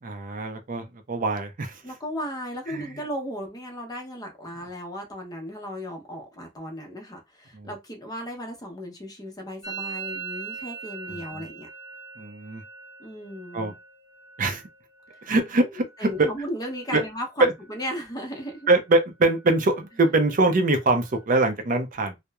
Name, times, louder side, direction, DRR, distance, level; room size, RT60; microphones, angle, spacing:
voice 1, 0.0-1.8 2.7-2.9 7.5-7.7 11.1-11.4 12.2-12.6 13.5-13.7 14.4-14.6 15.2-16.3 16.9-17.0 17.4-17.5 18.7-22.2, right 2 dB, 45° right, 0.5 m, -23 dB
voice 2, 1.8-11.7 13.0-13.7 15.6-15.7 16.0-18.7, equal, 20° left, 0.7 m, -35 dB
Musical instrument, 9.6-17.3 17.5-18.1 18.4-19.0 19.2-21.3, right 6 dB, 20° right, 1.0 m, -42 dB
2.9 x 2.0 x 2.2 m
head